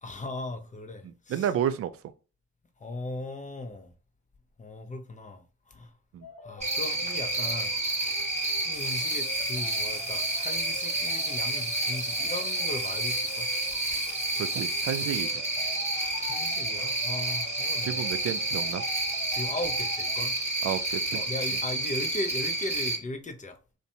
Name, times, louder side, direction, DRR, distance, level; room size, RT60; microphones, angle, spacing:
voice 1, 0.0-1.5 2.8-3.9 4.6-5.9 6.4-7.8 8.6-13.5 15.9-18.1 19.3-20.4 21.1-23.6, left 2 dB, 25° left, 0.6 m, -38 dB
voice 2, 1.0-1.9 6.1-6.3 14.4-15.4 17.8-18.8 20.6-21.2, right 9 dB, 45° right, 0.4 m, -31 dB
sound 1, 6.2-20.2, left 1 dB, 45° left, 1.2 m, -45 dB
Cricket, 6.6-23.0, right 2 dB, 20° right, 1.0 m, -30 dB
sound 2, 8.7-15.4, left 6 dB, 85° left, 0.6 m, -44 dB
2.5 x 2.2 x 2.7 m
hypercardioid pair, 45°, 33 cm